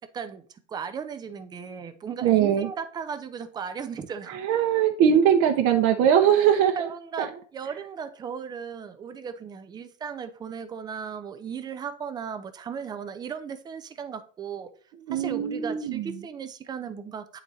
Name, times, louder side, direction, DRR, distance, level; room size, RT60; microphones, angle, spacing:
voice 1, 0.1-4.4 6.9-14.7 15.1-17.4, right 6 dB, 10° right, 10 dB, 0.4 m, -36 dB
voice 2, 2.2-2.7 4.3-6.9 7.2-7.3 15.1-16.2, right 9 dB, 40° right, 3 dB, 0.7 m, -21 dB
8.7 x 3.8 x 4.0 m, 0.43 s
supercardioid pair, 130°, 39 cm